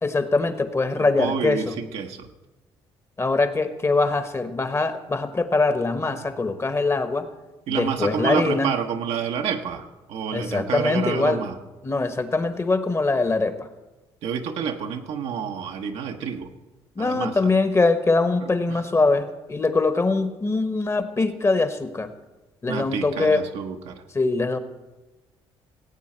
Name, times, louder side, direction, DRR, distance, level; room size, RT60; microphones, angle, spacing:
voice 1, 0.0-1.8 3.2-7.3 7.7-8.7 10.3-11.4 11.8-13.7 16.9-22.1 22.6-23.5 24.1-24.6, left 3 dB, 25° left, 10 dB, 1.1 m, -23 dB
voice 2, 1.0-2.3 7.7-11.6 14.2-16.5 17.0-17.4 18.4-18.8 22.7-24.0, right 7 dB, 75° right, 4 dB, 1.0 m, -29 dB
17.0 x 8.5 x 4.4 m, 1.1 s
supercardioid pair, 75°, 11 cm